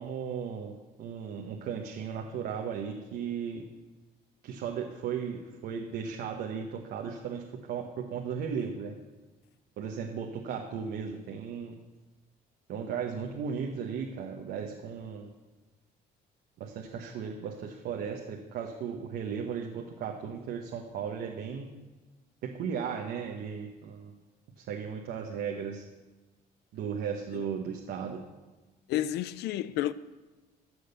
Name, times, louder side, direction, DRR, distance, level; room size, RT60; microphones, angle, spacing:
voice 1, 0.0-3.6 4.4-8.9 9.8-11.7 12.7-15.3 16.6-21.7 22.4-24.1 24.6-25.8 26.7-28.2, right 7 dB, 70° right, 1.2 m, -36 dB
voice 2, 28.9-29.9, left 12 dB, 80° left, 0.6 m, -30 dB
13.5 x 6.4 x 6.9 m
cardioid pair, 110°, 17 cm